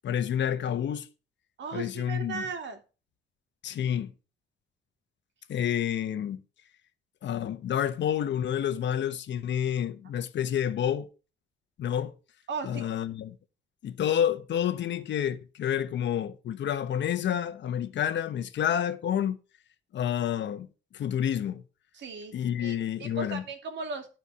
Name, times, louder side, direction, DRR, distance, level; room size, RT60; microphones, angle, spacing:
voice 1, 0.0-1.1 1.7-2.4 3.6-4.1 5.5-6.4 7.2-11.1 11.8-12.2 12.6-13.4 13.8-19.4 19.9-20.7 20.9-21.6 22.3-23.4, left 9 dB, 65° left, 1.1 m, -29 dB
voice 2, 1.6-2.8 12.5-12.8 21.9-22.3 22.6-24.1, right 4 dB, 65° right, 2.6 m, -36 dB
13.0 x 4.6 x 5.8 m
cardioid pair, 90°, 20 cm